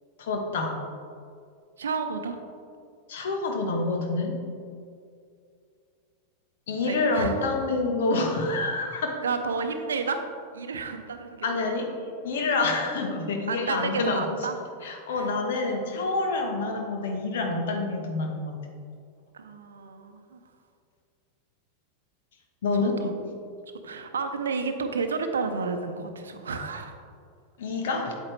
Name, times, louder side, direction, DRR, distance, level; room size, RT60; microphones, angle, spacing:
voice 1, 0.2-0.8 3.1-4.4 6.7-9.2 11.4-11.9 12.2-14.5 14.8-18.6 22.6-23.0 27.6-28.2, left 3 dB, 60° left, 3 dB, 1.2 m, -27 dB
voice 2, 1.8-2.4 6.8-7.3 9.2-10.2 10.5-11.7 13.5-14.6 15.1-15.3 19.3-20.4 22.8-23.1 23.8-27.0, right 4 dB, 70° right, 7 dB, 0.7 m, -31 dB
8.6 x 8.2 x 3.3 m, 2.3 s
figure-of-eight pair, 90°, 0 cm